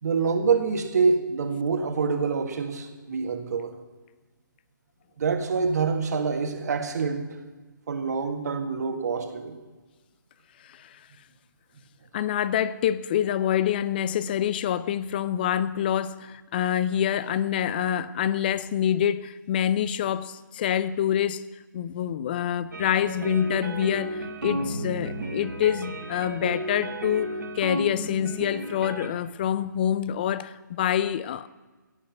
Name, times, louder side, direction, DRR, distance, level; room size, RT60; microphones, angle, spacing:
voice 1, 0.0-3.8 5.2-7.3 7.9-9.6, right 5 dB, 55° right, 1.8 m, -26 dB
voice 2, 10.6-11.0 12.1-21.4 21.7-27.3 27.6-31.5, left 10 dB, 30° left, 0.5 m, -26 dB
sound 1, 22.7-29.1, right 1 dB, 75° right, 1.9 m, -33 dB
16.0 x 8.7 x 6.0 m
figure-of-eight pair, 150°, 11 cm